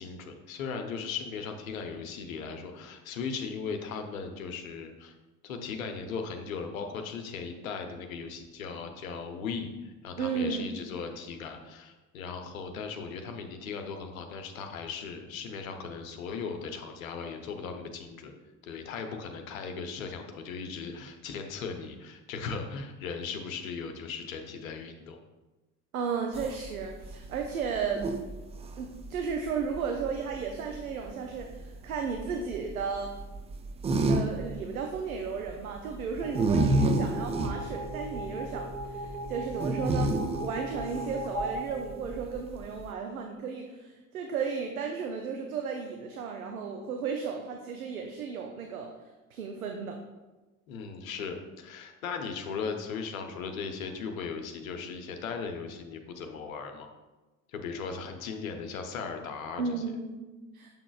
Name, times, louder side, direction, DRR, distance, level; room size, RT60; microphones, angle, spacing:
voice 1, 0.0-5.1 5.4-18.3 18.6-25.2 50.7-56.9 57.5-59.7, left 5 dB, 70° left, 5 dB, 0.8 m, -38 dB
voice 2, 10.2-10.7 25.9-28.0 28.8-33.1 34.0-48.9 49.3-50.0 59.6-60.7, right 5 dB, 75° right, 3 dB, 0.7 m, -34 dB
sound 1, 26.3-42.9, right 2 dB, 15° right, 0.4 m, -32 dB
sound 2, 36.2-42.7, right 1 dB, 20° left, 1.5 m, -38 dB
6.8 x 6.0 x 2.4 m, 1.1 s
figure-of-eight pair, 65°, 43 cm